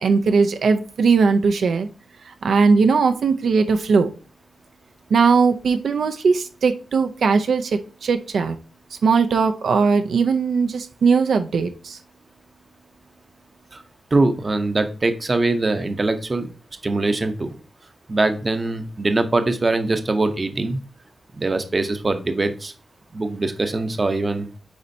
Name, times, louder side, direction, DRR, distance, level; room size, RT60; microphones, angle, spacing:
voice 1, 0.0-1.9 2.4-4.1 5.1-8.6 9.0-12.0, right 5 dB, 65° right, 7 dB, 0.5 m, -19 dB
voice 2, 14.1-16.5 16.8-17.6 18.1-20.8 21.4-22.7 23.1-24.5, right 2 dB, 25° right, 7 dB, 0.8 m, -22 dB
9.3 x 4.3 x 2.7 m, 0.37 s
wide cardioid pair, 165°, 0 cm